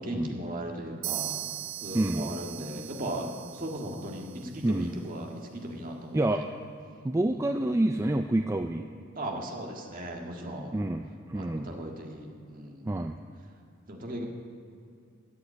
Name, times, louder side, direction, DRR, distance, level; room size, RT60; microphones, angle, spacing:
voice 1, 0.0-1.4 1.8-6.4 7.2-7.5 9.1-10.7 11.3-12.9 13.9-14.2, right 1 dB, 40° right, 1 dB, 1.8 m, -37 dB
sound 1, 1.0-4.8, right 13 dB, 85° right, 0.5 m, -39 dB
voice 2, 1.9-2.3 4.6-4.9 6.1-6.4 7.0-8.9 10.7-11.7 12.9-13.2, right 1 dB, 15° right, 6 dB, 0.3 m, -28 dB
13.0 x 8.5 x 8.5 m, 2.5 s
head